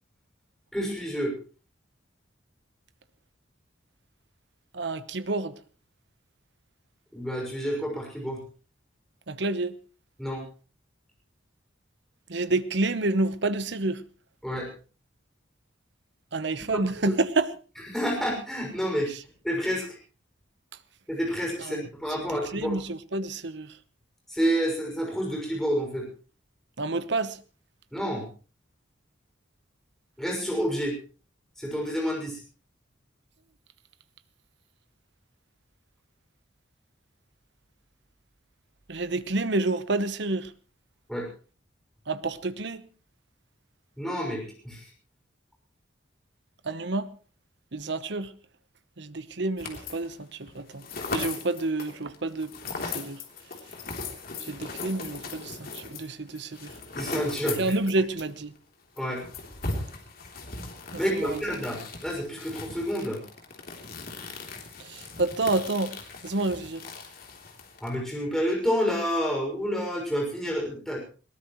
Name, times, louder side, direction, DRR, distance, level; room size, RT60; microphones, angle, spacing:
voice 1, 0.7-1.4 7.1-8.4 10.2-10.4 14.4-14.7 16.7-17.2 17.9-19.1 19.4-19.9 21.1-22.8 24.3-26.1 27.9-28.3 30.2-31.0 31.6-32.4 41.1-41.3 44.0-44.8 57.0-57.7 59.0-59.2 61.0-63.2 67.8-71.0, equal, ahead, 6.1 m, -29 dB
voice 2, 4.7-5.5 9.3-9.8 12.3-14.0 16.3-17.5 21.6-21.9 22.3-23.7 26.8-27.4 38.9-40.5 42.1-42.9 46.6-47.1 47.7-48.3 49.0-50.8 51.1-53.2 54.4-56.7 57.6-58.5 60.9-61.4 64.9-66.0 66.2-66.8, right 2 dB, 60° right, 1.0 m, -29 dB
sound 1, 49.6-50.2 50.5-58.3 58.6-58.7 59.0-68.0, left 3 dB, 50° left, 3.3 m, -38 dB
21.0 x 18.5 x 3.1 m
head